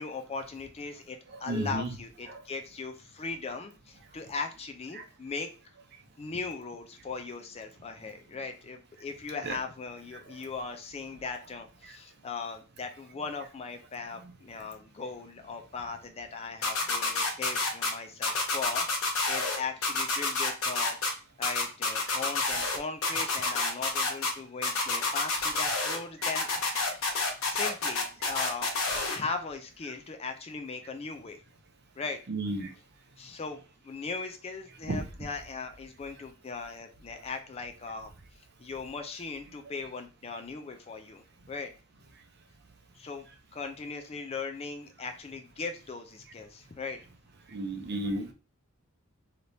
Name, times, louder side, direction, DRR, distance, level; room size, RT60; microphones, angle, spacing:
voice 1, 0.0-5.5 6.2-18.9 19.3-21.0 21.4-27.0 27.5-28.7 29.1-31.4 32.0-32.2 33.2-38.1 38.6-41.7 43.0-43.3 43.5-47.0, left 4 dB, 30° left, 5 dB, 0.4 m, -38 dB
voice 2, 1.3-2.0 2.3-2.4 4.9-5.0 9.4-9.6 26.9-27.0 32.3-32.7 34.8-35.0 47.5-48.3, right 2 dB, 50° right, 6 dB, 0.6 m, -33 dB
sound 1, 16.6-17.9 18.2-19.6 19.8-21.1 21.4-22.8 23.0-24.3 24.6-26.0 26.2-29.2, left 3 dB, 70° left, 0.9 m, -28 dB
3.3 x 2.9 x 2.6 m, 0.35 s
head